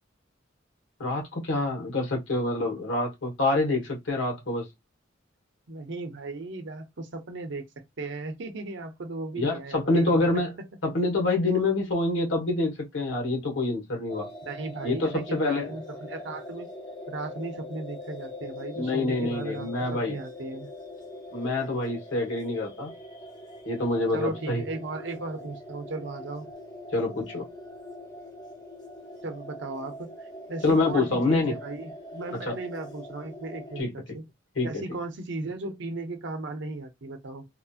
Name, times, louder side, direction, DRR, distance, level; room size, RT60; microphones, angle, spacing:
voice 1, 1.0-4.7 9.3-10.5 10.8-14.3 14.8-15.7 18.8-20.1 21.3-22.9 23.6-24.6 26.9-27.4 30.6-31.5 32.4-32.5 33.8-33.9 34.5-34.7, left 2 dB, 85° left, 1.5 m, -26 dB
voice 2, 5.7-10.4 14.4-16.7 17.1-20.7 24.1-26.5 29.2-34.2 34.6-37.5, right 3 dB, 65° right, 0.7 m, -36 dB
sound 1, 14.1-33.8, left 1 dB, 20° left, 0.9 m, -42 dB
2.9 x 2.7 x 2.4 m
head